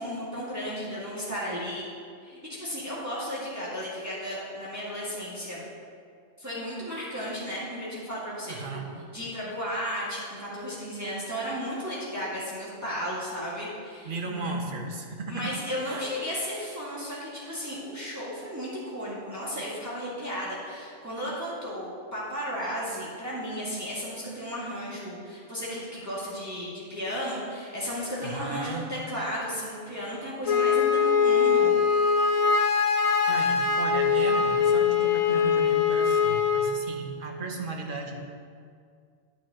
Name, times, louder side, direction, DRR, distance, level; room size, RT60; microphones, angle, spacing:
voice 1, 0.0-1.9 2.2-5.6 6.4-8.8 9.1-14.5 15.3-31.7, equal, 15° right, -8 dB, 1.7 m, -34 dB
voice 2, 8.5-8.9 14.0-15.6 15.9-16.0 28.2-28.9 32.7-38.2, right 2 dB, 45° right, 2 dB, 1.0 m, -35 dB
Wind instrument woodwind instrument, 30.4-36.7, left 6 dB, 60° left, 0.3 m, -22 dB
9.4 x 9.2 x 2.8 m, 2.2 s
omnidirectional pair, 1.3 m